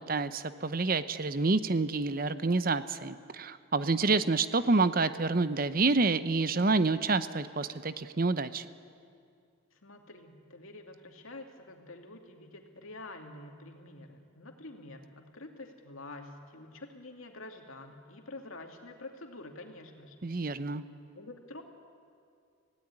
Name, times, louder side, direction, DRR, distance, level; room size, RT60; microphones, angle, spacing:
voice 1, 0.1-8.7 20.2-20.8, right 3 dB, 45° right, 13 dB, 0.7 m, -28 dB
voice 2, 9.7-20.2 21.2-21.6, left 2 dB, 85° left, 3 dB, 2.5 m, -47 dB
25.5 x 17.0 x 9.7 m, 2.4 s
head